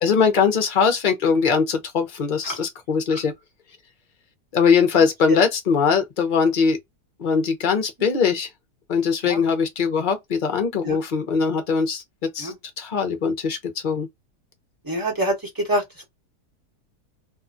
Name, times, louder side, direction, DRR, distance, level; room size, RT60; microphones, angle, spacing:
voice 1, 0.0-3.3 4.5-6.8 7.2-8.5 8.9-12.0 12.3-14.1, left 5 dB, 40° left, 0.7 m, -21 dB
voice 2, 14.8-15.3 15.7-16.1, right 1 dB, 15° right, 1.1 m, -25 dB
2.8 x 2.3 x 2.6 m
omnidirectional pair, 1.7 m